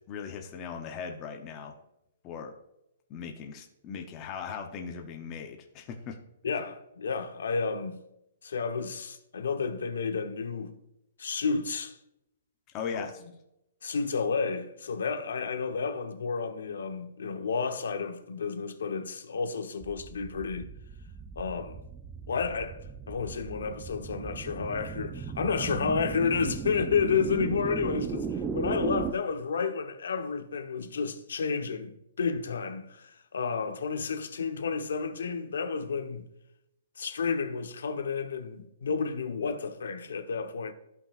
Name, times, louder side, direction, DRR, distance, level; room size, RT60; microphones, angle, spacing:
voice 1, 0.0-1.7 2.2-2.5 3.1-6.2 12.7-13.1, left 6 dB, 20° left, 0.7 m, -38 dB
voice 2, 6.4-8.0 8.4-10.8 11.2-11.9 12.9-13.1 13.8-20.7 21.4-21.8 22.3-22.8 23.1-36.2 37.0-40.7, left 5 dB, 90° left, 1.0 m, -31 dB
sound 1, 19.8-29.1, right 6 dB, 10° right, 0.3 m, -37 dB
14.5 x 5.6 x 2.4 m
hypercardioid pair, 175°, 0 cm